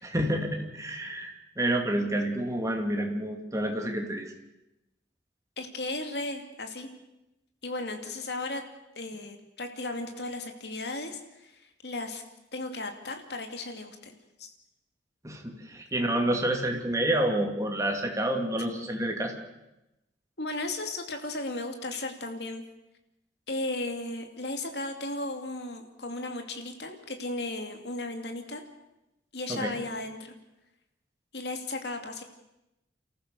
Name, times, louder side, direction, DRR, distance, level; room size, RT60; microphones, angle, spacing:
voice 1, 0.0-4.3 15.2-19.4 29.5-29.7, right 1 dB, 20° right, 3 dB, 2.6 m, -29 dB
voice 2, 5.6-6.9 7.6-8.6 9.0-12.2 12.5-14.5 20.4-22.6 23.5-28.6 29.3-30.3 31.3-32.2, left 2 dB, 65° left, 5 dB, 2.5 m, -35 dB
28.5 x 14.5 x 6.8 m, 0.93 s
head